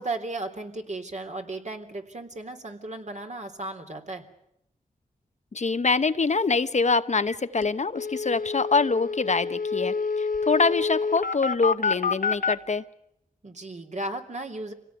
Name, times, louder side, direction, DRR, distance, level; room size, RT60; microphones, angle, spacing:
voice 1, 0.0-4.2 13.4-14.7, right 2 dB, 50° right, 4 dB, 3.6 m, -35 dB
voice 2, 5.5-12.8, left 4 dB, 50° left, 11 dB, 1.0 m, -25 dB
sound 1, 7.3-7.4 7.6-7.7 8.0-12.5, left 4 dB, 70° left, 1.5 m, -27 dB
26.5 x 17.5 x 9.7 m, 0.79 s
cardioid pair, 60°, 16 cm